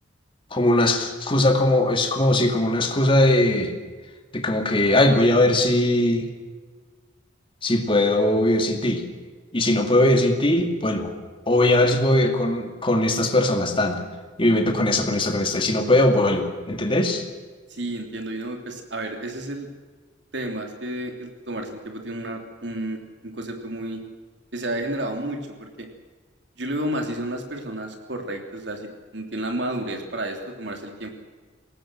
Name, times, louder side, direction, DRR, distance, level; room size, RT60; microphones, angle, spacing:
voice 1, 0.5-3.7 4.3-6.3 7.6-9.0 9.5-11.1 11.5-14.0 14.4-17.2, left 1 dB, 30° left, 4 dB, 2.4 m, -20 dB
voice 2, 17.7-19.7 20.3-24.0 24.5-25.9 26.6-31.1, right 1 dB, 65° right, 4 dB, 3.3 m, -31 dB
22.0 x 18.5 x 7.7 m, 1.4 s
head